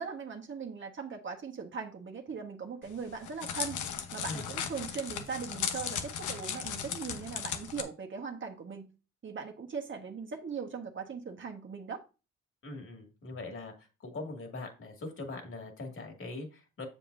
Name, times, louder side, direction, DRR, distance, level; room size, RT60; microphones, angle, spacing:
voice 1, 0.0-3.8 4.1-8.9 9.2-12.0, right 6 dB, 40° right, 1.4 m, -39 dB
Crackle, 2.8-7.8, left 8 dB, 80° left, 1.1 m, -36 dB
voice 2, 12.6-16.9, left 2 dB, 45° left, 2.5 m, -42 dB
7.5 x 7.1 x 2.7 m
cardioid pair, 90°, 30 cm